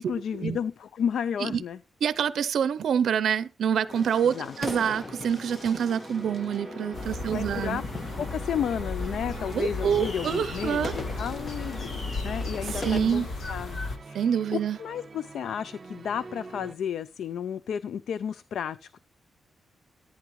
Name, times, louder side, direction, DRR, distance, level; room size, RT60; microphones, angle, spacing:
voice 1, 0.0-1.8 4.2-4.5 7.2-7.8 8.2-13.8 14.1-19.0, left 8 dB, 75° left, 0.4 m, -32 dB
voice 2, 2.0-7.8 9.5-10.9 12.7-13.3 14.1-14.8, right 8 dB, 70° right, 0.6 m, -26 dB
sound 1, 3.9-13.0, left 2 dB, 30° left, 1.3 m, -40 dB
sound 2, 5.6-16.8, right 3 dB, 35° right, 1.5 m, -45 dB
sound 3, 6.9-14.0, left 2 dB, 50° left, 1.7 m, -35 dB
14.5 x 9.2 x 3.1 m
wide cardioid pair, 160°, 0 cm